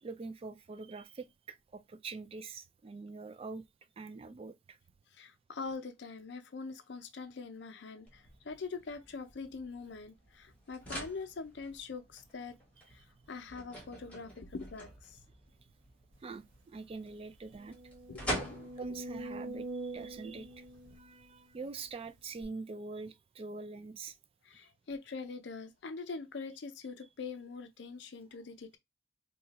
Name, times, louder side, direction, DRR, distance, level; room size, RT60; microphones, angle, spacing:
voice 1, 0.0-3.6 4.0-4.8 16.2-17.8 18.8-20.6 20.9-24.2, right 4 dB, 30° right, 0.3 m, -44 dB
voice 2, 5.1-12.6 12.9-15.2 18.1-18.7 24.4-28.8, left 4 dB, 65° left, 0.5 m, -43 dB
sound 1, 8.1-21.0, equal, 5° left, 1.1 m, -46 dB
sound 2, 16.4-16.5 16.9-17.0 17.5-21.7 22.4-22.5, right 2 dB, 90° right, 1.1 m, -44 dB
2.8 x 2.3 x 4.0 m
head